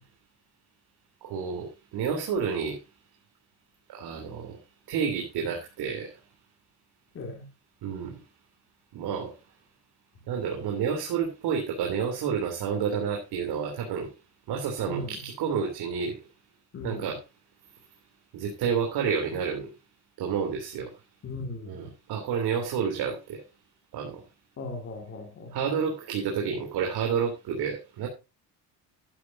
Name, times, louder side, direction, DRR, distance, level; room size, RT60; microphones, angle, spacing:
voice 1, 1.2-2.8 3.9-4.6 4.9-6.1 7.8-8.2 8.9-9.3 10.3-14.1 14.5-16.2 16.8-17.2 18.3-19.7 20.2-20.9 21.7-23.4 23.9-24.2 25.5-28.1, right 6 dB, 70° right, 3.4 m, -30 dB
voice 2, 7.1-7.5 14.9-15.2 16.7-17.1 21.2-21.9 24.6-25.6, left 2 dB, 35° left, 2.3 m, -37 dB
11.5 x 11.5 x 2.8 m
cardioid pair, 170°, 40 cm